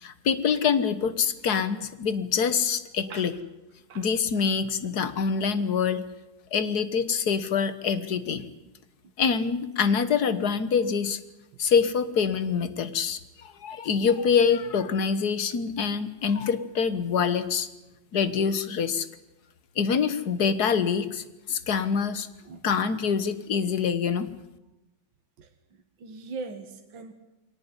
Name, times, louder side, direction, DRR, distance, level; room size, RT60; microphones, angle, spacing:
voice 1, 0.0-3.3 4.0-6.1 6.5-8.5 9.2-11.2 11.6-17.7 18.1-19.1 19.8-22.3 22.6-24.3, left 6 dB, 55° left, 13 dB, 1.7 m, -25 dB
voice 2, 22.5-22.9 25.4-25.5 26.0-27.1, right 4 dB, 75° right, 6 dB, 2.3 m, -40 dB
22.5 x 18.0 x 9.8 m, 0.97 s
omnidirectional pair, 2.1 m